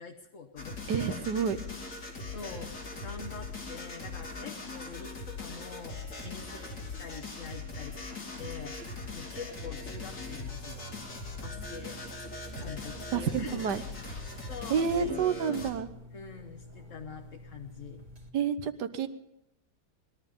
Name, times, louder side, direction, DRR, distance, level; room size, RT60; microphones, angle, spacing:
voice 1, 0.0-1.2 2.3-8.8 9.1-11.0 11.4-12.0 12.6-13.9 14.5-15.6 16.1-18.0, left 5 dB, 50° left, 2 dB, 1.3 m, -45 dB
sound 1, 0.6-15.7, left 3 dB, 80° left, 3.4 m, -41 dB
voice 2, 0.9-1.6 13.1-13.8 14.7-15.9 18.3-19.1, right 7 dB, 80° right, 10 dB, 1.5 m, -29 dB
sound 2, 9.7-18.3, left 1 dB, 25° right, 1.8 m, -50 dB
20.5 x 12.0 x 5.4 m, 0.87 s
omnidirectional pair, 1.8 m